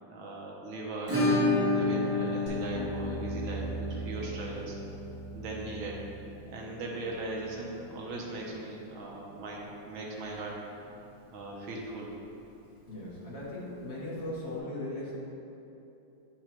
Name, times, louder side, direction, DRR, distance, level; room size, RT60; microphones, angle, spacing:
voice 1, 0.0-1.2 1.7-4.8 5.3-6.0 6.5-10.6 11.3-12.1, right 2 dB, 85° right, -2 dB, 1.7 m, -39 dB
Acoustic guitar / Strum, 1.1-9.7 9.9-10.0 10.3-10.4 10.8-10.9 12.9-13.0 14.2-14.3, left 2 dB, 10° right, 0.9 m, -32 dB
sound 1, 2.5-7.7, right 4 dB, 85° left, 1.7 m, -41 dB
voice 2, 12.9-15.2, left 1 dB, 35° left, -8 dB, 1.7 m, -38 dB
8.6 x 4.6 x 3.0 m, 2.9 s
omnidirectional pair, 2.1 m